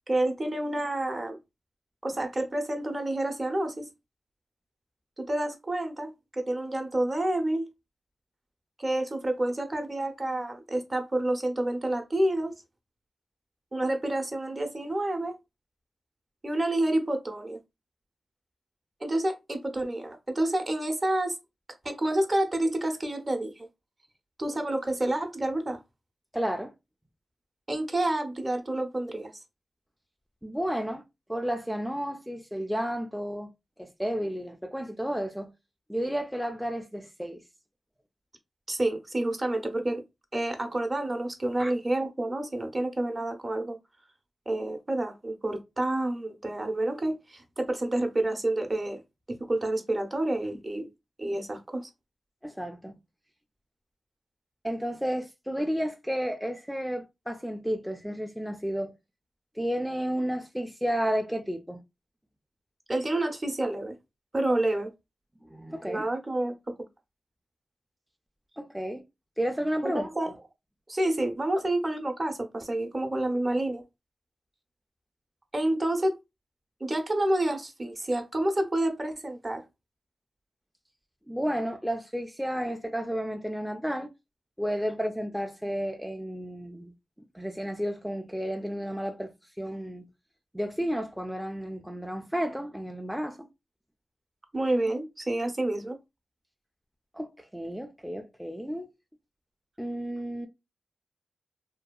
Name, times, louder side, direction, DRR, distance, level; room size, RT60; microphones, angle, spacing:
voice 1, 0.1-1.4 2.0-3.9 5.2-7.7 8.8-12.5 13.7-15.3 16.4-17.6 19.0-21.3 21.8-23.7 24.4-25.8 27.7-29.3 38.7-40.0 40.3-43.8 44.5-49.0 49.3-50.9 51.2-51.9 62.9-64.0 64.3-64.9 65.9-66.5 69.8-70.3 70.9-73.8 75.5-76.2 76.8-79.6 94.5-96.0, right 1 dB, 35° right, 0.6 m, -29 dB
voice 2, 26.3-26.7 30.4-31.0 31.3-33.5 33.8-35.5 35.9-37.4 41.6-41.7 52.4-53.0 54.6-58.9 59.6-61.8 65.4-66.1 68.6-69.0 69.4-70.1 81.3-84.1 84.6-86.9 87.3-90.1 90.5-93.5 97.1-98.9 99.8-100.5, equal, ahead, 0.3 m, -32 dB
2.7 x 2.3 x 2.2 m
cardioid pair, 65°, 0 cm